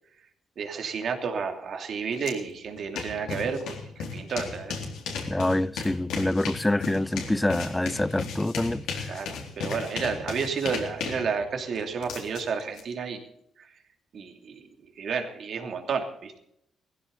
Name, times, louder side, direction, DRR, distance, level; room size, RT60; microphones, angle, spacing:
voice 1, 0.6-4.8 9.1-13.3 14.1-14.6 15.0-16.3, right 5 dB, 60° right, 2.9 m, -31 dB
sound 1, 2.2-2.3 2.6-12.8, left 5 dB, 85° left, 3.9 m, -35 dB
voice 2, 5.3-8.8, left 1 dB, 10° left, 0.4 m, -26 dB
17.5 x 15.0 x 4.1 m
cardioid pair, 90°, 0 cm